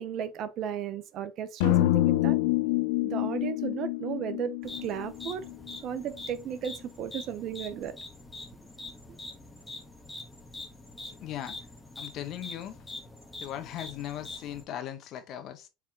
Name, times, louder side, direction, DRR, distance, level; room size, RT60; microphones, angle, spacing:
voice 1, 0.0-2.4 3.0-5.4 5.8-7.9, right 9 dB, 50° right, 0.7 m, -35 dB
sound 1, 1.6-5.8, left 17 dB, 70° left, 0.4 m, -27 dB
sound 2, 4.6-14.6, left 2 dB, 15° left, 1.3 m, -44 dB
voice 2, 11.1-11.7 12.0-12.8 13.4-15.7, left 11 dB, 50° left, 1.1 m, -38 dB
4.9 x 3.6 x 2.9 m
hypercardioid pair, 90°, 0 cm